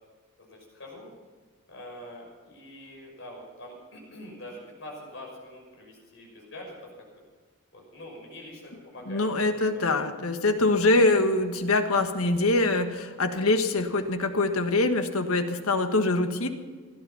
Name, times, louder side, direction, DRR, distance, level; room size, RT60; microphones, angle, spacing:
voice 1, 0.4-1.1 1.7-6.9 7.7-9.8, left 1 dB, 60° left, -1 dB, 5.8 m, -44 dB
voice 2, 9.1-16.5, left 2 dB, 85° left, 7 dB, 1.5 m, -24 dB
17.0 x 12.0 x 5.8 m, 1.5 s
head